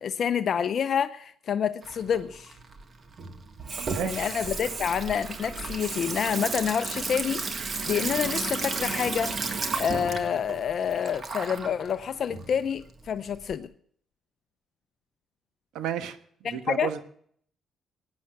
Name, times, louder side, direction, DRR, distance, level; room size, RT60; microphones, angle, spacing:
voice 1, 0.0-2.5 4.0-9.4 9.8-13.7 16.4-16.9, left 7 dB, 60° left, 0.6 m, -28 dB
Water tap faucet / Sink (filling or washing), 1.8-13.5, right 4 dB, 40° right, 1.7 m, -33 dB
voice 2, 3.8-4.3 15.7-16.2 16.4-17.0, right 9 dB, 90° right, 1.2 m, -32 dB
16.5 x 9.8 x 5.8 m
cardioid pair, 90°, 0 cm